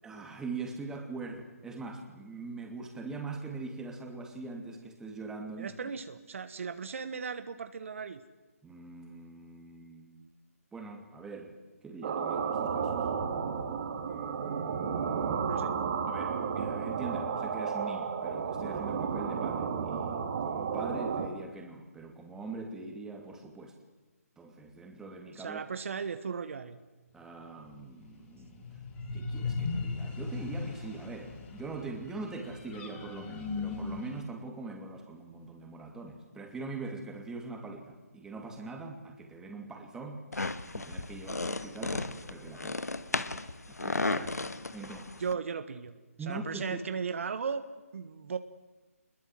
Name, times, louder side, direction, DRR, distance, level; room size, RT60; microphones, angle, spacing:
voice 1, 0.0-5.7 8.6-10.3 10.7-11.6 11.8-13.1 16.0-23.8 24.4-25.6 27.1-28.6 29.1-40.2 40.7-42.9 43.7-44.1 44.7-45.2 46.2-46.8, right 3 dB, 5° right, 3 dB, 2.7 m, -42 dB
voice 2, 5.5-8.2 13.9-15.7 25.4-26.8 44.0-44.3 45.2-47.6 47.9-48.4, right 6 dB, 55° right, 11 dB, 1.4 m, -37 dB
sound 1, 12.0-21.3, right 6 dB, 40° right, 2.9 m, -32 dB
sound 2, 28.3-34.2, left 4 dB, 20° left, 5.5 m, -37 dB
sound 3, 40.3-45.3, left 3 dB, 85° left, 1.5 m, -35 dB
25.5 x 21.5 x 7.7 m, 1.2 s
figure-of-eight pair, 150°, 8 cm